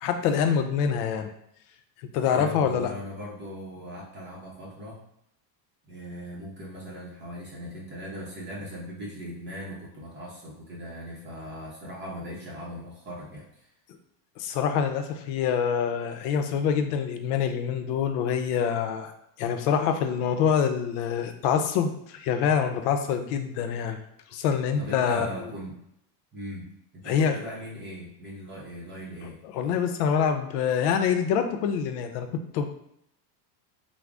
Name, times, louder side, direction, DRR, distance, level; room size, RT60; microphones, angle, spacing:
voice 1, 0.0-1.3 2.1-2.9 14.4-19.1 19.4-24.0 24.3-25.3 27.1-27.4 29.5-32.7, left 7 dB, 80° left, 7 dB, 0.6 m, -25 dB
voice 2, 2.3-5.0 5.9-13.7 24.8-25.8 26.3-29.4, equal, 25° right, -4 dB, 0.6 m, -39 dB
3.6 x 2.0 x 3.5 m, 0.77 s
cardioid pair, 155°, 47 cm